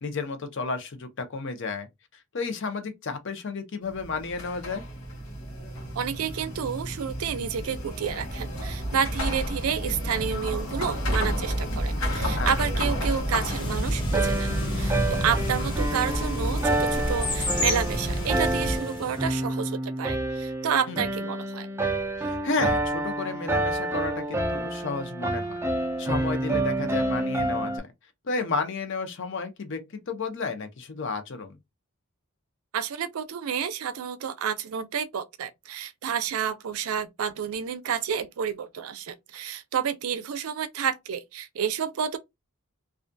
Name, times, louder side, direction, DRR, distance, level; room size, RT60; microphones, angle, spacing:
voice 1, 0.0-1.9 2.3-4.8 12.4-12.5 20.9-21.0 22.2-25.6 26.0-27.9 28.2-31.6, left 4 dB, 60° left, 0.6 m, -32 dB
sound 1, 3.8-18.8, equal, 80° left, 0.9 m, -30 dB
voice 2, 5.9-21.7 32.7-42.2, right 7 dB, 80° right, 0.4 m, -30 dB
sound 2, 13.4-19.3, left 2 dB, 20° left, 0.7 m, -33 dB
sound 3, 14.1-27.8, right 1 dB, 10° right, 0.3 m, -29 dB
2.4 x 2.2 x 2.5 m
head